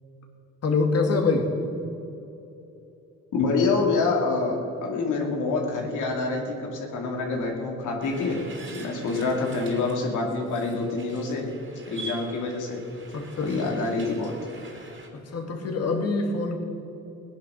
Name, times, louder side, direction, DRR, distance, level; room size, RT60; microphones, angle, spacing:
voice 1, 0.6-1.5 9.1-9.2 13.1-13.7 15.1-16.6, left 3 dB, 55° left, 3 dB, 2.4 m, -25 dB
voice 2, 3.3-8.4 8.7-11.5 11.9-12.8 13.4-14.3, left 3 dB, 80° left, 0 dB, 2.5 m, -26 dB
sound 1, 8.0-15.1, right 2 dB, 40° right, 3.1 m, -44 dB
18.0 x 10.0 x 6.2 m, 2.9 s
cardioid pair, 90°, 30 cm